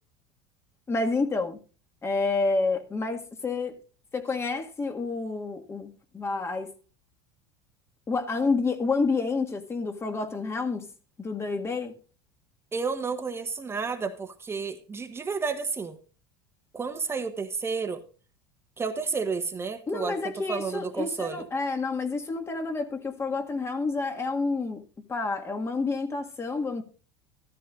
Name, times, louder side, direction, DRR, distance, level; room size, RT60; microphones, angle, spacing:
voice 1, 0.9-1.6 2.0-3.8 4.1-6.7 8.1-10.9 11.2-11.9 19.9-24.8 25.1-26.8, left 3 dB, 20° left, 1.8 m, -29 dB
voice 2, 12.7-16.0 16.7-18.0 18.8-20.1 20.5-21.5, right 5 dB, 20° right, 1.2 m, -31 dB
13.5 x 13.5 x 2.5 m
supercardioid pair, 110°, 12 cm